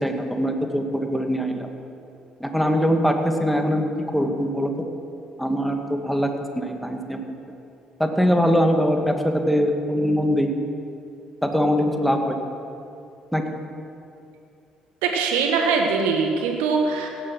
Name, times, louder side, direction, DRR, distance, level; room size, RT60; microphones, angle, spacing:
voice 1, 0.0-1.7 2.4-3.9 4.1-4.7 5.4-6.3 6.6-7.2 8.0-10.5 11.4-12.4 13.3-13.4, equal, ahead, 4 dB, 2.1 m, -22 dB
voice 2, 15.0-17.1, right 5 dB, 75° right, 2 dB, 1.3 m, -22 dB
16.5 x 11.0 x 6.1 m, 2.6 s
hypercardioid pair, 50°, 3 cm